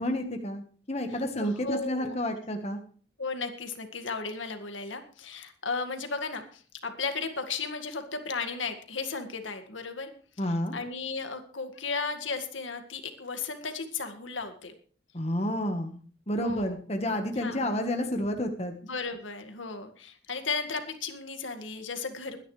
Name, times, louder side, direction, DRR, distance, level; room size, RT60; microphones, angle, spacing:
voice 1, 0.0-2.8 10.4-10.8 15.1-16.0 16.3-18.7, left 1 dB, 35° left, 5 dB, 1.4 m, -30 dB
voice 2, 1.1-2.2 3.2-10.1 10.5-14.7 16.4-16.8 17.4-17.7 18.8-22.4, left 4 dB, 90° left, 6 dB, 1.9 m, -35 dB
21.5 x 10.5 x 3.3 m, 0.42 s
head